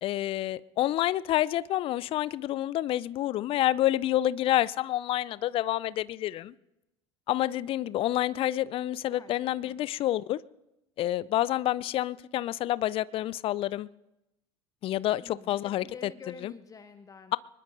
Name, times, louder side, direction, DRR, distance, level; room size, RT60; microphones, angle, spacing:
voice 1, 0.0-6.5 7.3-10.4 11.0-13.9 14.8-15.8 16.4-16.5, left 14 dB, 40° left, 20 dB, 0.5 m, -28 dB
voice 2, 9.1-10.1 15.2-17.4, left 4 dB, 25° left, 10 dB, 0.9 m, -49 dB
24.0 x 20.5 x 2.6 m, 0.91 s
figure-of-eight pair, 65°, 15 cm